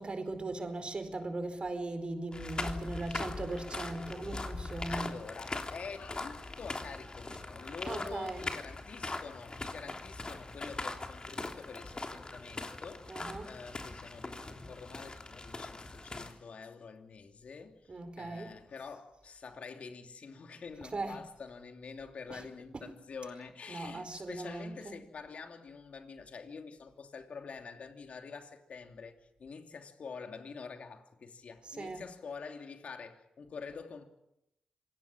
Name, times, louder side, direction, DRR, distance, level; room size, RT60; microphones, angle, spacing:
voice 1, 0.0-5.1 7.8-8.4 13.1-13.5 17.9-18.5 20.9-21.2 22.3-22.4 22.7-22.9 23.7-24.9 31.7-32.0, right 2 dB, 45° right, 4.6 m, -39 dB
sound 1, 2.3-16.3, left 2 dB, 35° left, 3.4 m, -41 dB
voice 2, 2.7-3.1 4.9-29.1 29.4-34.1, left 5 dB, 65° left, 2.9 m, -47 dB
26.5 x 18.0 x 7.4 m
supercardioid pair, 40°, 2 cm